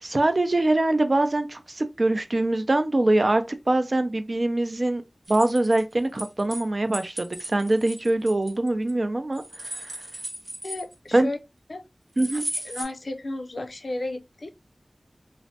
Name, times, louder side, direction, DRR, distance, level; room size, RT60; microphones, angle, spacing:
voice 1, 0.0-5.0 5.3-10.0 11.1-11.3 12.2-12.5, right 2 dB, 55° right, 0.4 m, -23 dB
sound 1, 5.2-6.6 6.9-8.9 9.3-11.2 12.2-12.8, right 1 dB, 85° right, 0.9 m, -36 dB
voice 2, 10.6-11.4 11.7-11.8 12.3-14.7, left 2 dB, 75° left, 0.5 m, -34 dB
3.1 x 2.1 x 2.7 m
wide cardioid pair, 50°, 0 cm